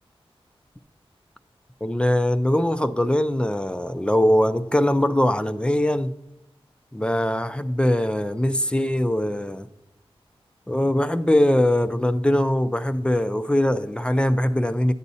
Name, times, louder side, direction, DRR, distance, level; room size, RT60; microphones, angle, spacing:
voice 1, 1.8-6.1 6.9-9.7 10.7-14.9, left 1 dB, 10° left, 0.3 m, -21 dB
11.0 x 8.3 x 2.7 m
wide cardioid pair, 120°, 10 cm